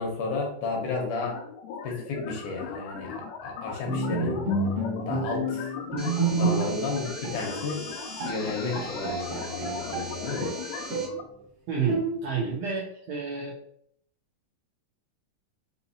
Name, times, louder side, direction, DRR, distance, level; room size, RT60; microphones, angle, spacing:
voice 1, 0.0-1.4 1.8-4.5 5.1-5.7 6.2-7.8 8.2-10.5, left 3 dB, 75° left, 0 dB, 2.2 m, -32 dB
sound 1, 1.2-11.2, left 6 dB, 90° left, 2.2 m, -39 dB
Bowed string instrument, 3.9-6.9 7.2-7.4 7.9-8.0 8.2-10.1 10.4-11.2 11.9-12.5, right 2 dB, 55° right, 1.8 m, -29 dB
sound 2, 6.0-11.1, right 1 dB, 45° left, 1.1 m, -41 dB
voice 2, 11.7-13.5, right 5 dB, 80° right, -3 dB, 1.5 m, -30 dB
5.5 x 2.8 x 2.7 m, 0.66 s
omnidirectional pair, 3.8 m